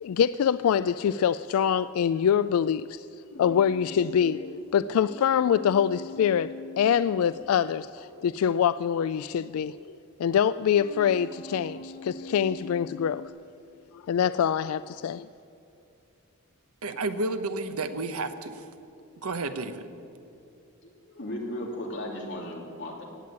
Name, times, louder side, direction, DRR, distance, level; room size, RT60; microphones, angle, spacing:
voice 1, 0.0-3.1 3.4-13.2 13.9-15.3, left 8 dB, 75° left, 16 dB, 0.3 m, -25 dB
sound 1, 3.3-8.2 9.5-9.6 10.4-13.3, left 2 dB, 40° left, 1.3 m, -43 dB
voice 2, 16.8-18.6 19.2-19.9, right 2 dB, 80° right, 10 dB, 1.0 m, -31 dB
voice 3, 20.8-23.1, left 1 dB, 55° left, -1 dB, 3.0 m, -36 dB
17.0 x 8.5 x 9.5 m, 2.7 s
head